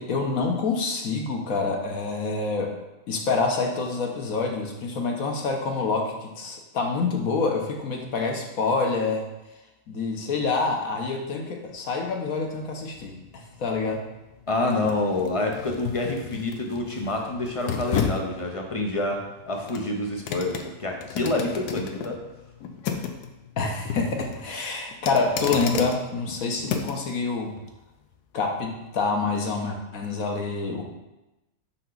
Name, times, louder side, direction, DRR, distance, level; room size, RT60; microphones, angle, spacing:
voice 1, 0.0-2.7 3.1-9.3 9.9-14.0 23.6-27.5 28.3-30.8, left 4 dB, 65° left, 1 dB, 1.3 m, -27 dB
sound 1, 12.4-27.1 27.6-27.7, left 7 dB, 85° left, 1.2 m, -34 dB
voice 2, 14.5-22.2, left 2 dB, 50° left, 1 dB, 0.4 m, -27 dB
6.0 x 5.6 x 3.9 m, 0.98 s
omnidirectional pair, 1.6 m